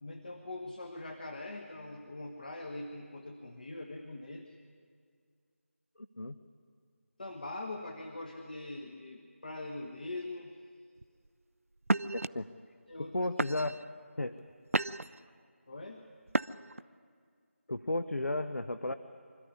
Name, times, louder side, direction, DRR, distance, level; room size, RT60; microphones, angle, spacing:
voice 1, 0.0-4.5 7.2-10.5 12.9-13.1 15.7-16.1, left 2 dB, 40° left, 4 dB, 1.2 m, -42 dB
voice 2, 6.0-6.3 12.1-12.5 13.0-13.8 14.2-14.3 17.7-18.9, left 2 dB, 70° left, 11 dB, 0.8 m, -34 dB
sound 1, 11.0-11.3 11.8-12.3 12.9-13.1 13.4-13.9 14.4-15.2 16.3-16.8, right 2 dB, 75° right, 0.5 m, -32 dB
25.0 x 13.0 x 9.9 m, 2.1 s
figure-of-eight pair, 165°, 8 cm